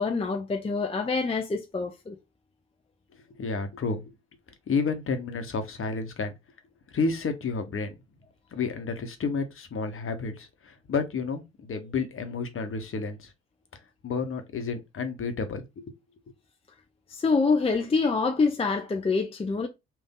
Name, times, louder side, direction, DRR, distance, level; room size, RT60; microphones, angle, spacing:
voice 1, 0.0-2.1 17.1-19.7, left 4 dB, 20° left, 0.6 m, -26 dB
voice 2, 3.4-4.0 4.7-6.3 6.9-7.9 8.5-13.3 14.0-15.9, left 4 dB, 40° left, 1.1 m, -30 dB
3.5 x 2.6 x 3.7 m
figure-of-eight pair, 40°, 31 cm